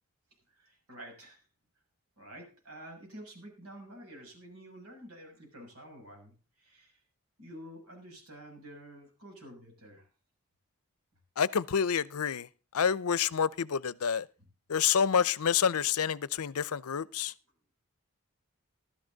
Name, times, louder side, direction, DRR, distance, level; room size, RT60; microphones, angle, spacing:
voice 1, 0.5-1.4 2.2-7.0 7.4-10.1, right 1 dB, 80° right, 7.2 m, -49 dB
voice 2, 11.4-12.5 12.7-14.3 14.7-17.3, left 7 dB, 85° left, 0.6 m, -28 dB
14.5 x 13.0 x 3.9 m
head